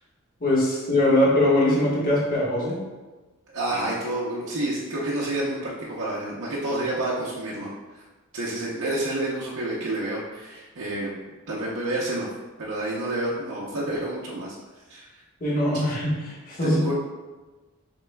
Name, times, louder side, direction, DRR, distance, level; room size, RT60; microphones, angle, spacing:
voice 1, 0.4-2.8 15.4-16.8, left 1 dB, 45° left, -6 dB, 1.4 m, -22 dB
voice 2, 3.5-8.0 8.3-11.1 11.5-12.3 12.6-14.5 14.9-15.1 16.6-16.9, right 1 dB, 70° right, -6 dB, 0.8 m, -29 dB
6.7 x 3.5 x 2.2 m, 1.2 s
head